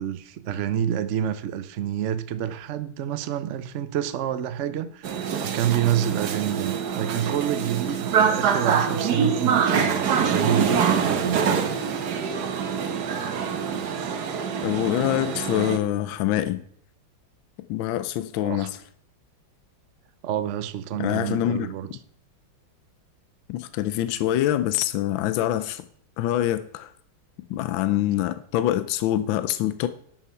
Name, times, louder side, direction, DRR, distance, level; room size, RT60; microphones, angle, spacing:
voice 1, 0.0-11.4 18.4-18.7 20.2-21.9, right 10 dB, 80° right, 0.6 m, -28 dB
sound 1, 5.0-15.8, right 7 dB, 60° right, 1.4 m, -25 dB
voice 2, 14.6-16.6 17.7-18.8 21.0-21.7 23.5-25.9 26.2-26.9 27.5-29.9, left 13 dB, 75° left, 1.3 m, -25 dB
11.5 x 7.1 x 5.7 m
omnidirectional pair, 2.2 m